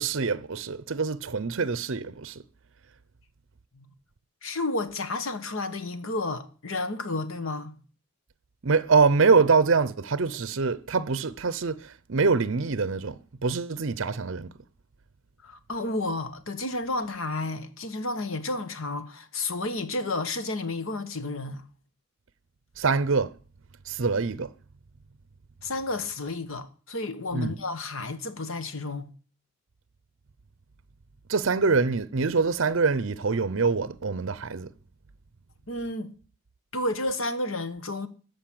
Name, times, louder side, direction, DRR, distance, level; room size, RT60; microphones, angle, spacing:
voice 1, 0.0-2.4 8.6-14.5 22.8-23.3 23.9-24.5 27.3-27.5 31.3-34.7, right 4 dB, 60° right, 0.6 m, -24 dB
voice 2, 4.4-7.7 15.4-21.6 25.6-29.1 35.7-36.1 36.7-38.1, left 2 dB, 65° left, 1.2 m, -31 dB
13.5 x 5.3 x 8.7 m
head